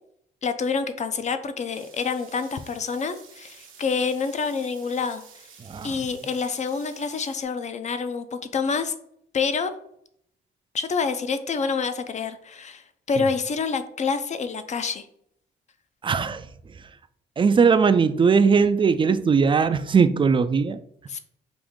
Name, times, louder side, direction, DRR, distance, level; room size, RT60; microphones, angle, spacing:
voice 1, 0.4-5.2 5.8-9.0 9.3-9.7 10.7-15.1 21.1-21.2, left 5 dB, 35° left, 0.5 m, -27 dB
sound 1, 1.7-7.4, right 7 dB, 85° right, 0.9 m, -50 dB
voice 2, 5.6-6.1 13.2-13.3 16.0-16.9 17.4-20.8, right 5 dB, 25° right, 0.3 m, -20 dB
5.0 x 2.6 x 3.6 m
cardioid pair, 90°, 20 cm